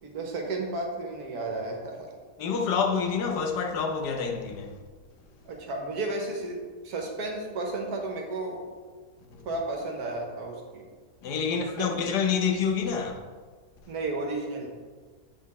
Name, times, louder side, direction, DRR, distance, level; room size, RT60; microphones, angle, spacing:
voice 1, 0.0-2.1 5.5-6.6 6.8-8.6 9.4-10.8 11.5-11.9 13.9-14.7, right 2 dB, 70° right, 1.6 m, -33 dB
voice 2, 2.4-4.8 9.3-9.4 11.2-13.1, left 6 dB, 85° left, 1.4 m, -27 dB
8.2 x 4.1 x 4.3 m
omnidirectional pair, 1.7 m